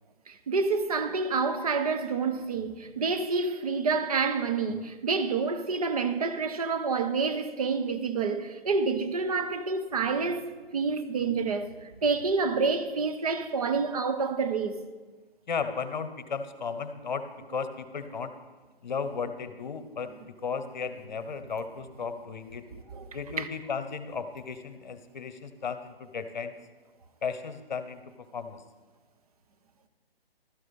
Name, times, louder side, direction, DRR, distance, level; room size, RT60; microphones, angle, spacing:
voice 1, 0.3-14.8 22.7-23.5, right 4 dB, 35° right, 0.8 m, -28 dB
voice 2, 15.5-18.3 18.8-22.7 23.1-26.5 27.2-28.0 28.3-28.6, left 5 dB, 45° left, 0.9 m, -35 dB
13.0 x 9.2 x 4.1 m
figure-of-eight pair, 145°, 31 cm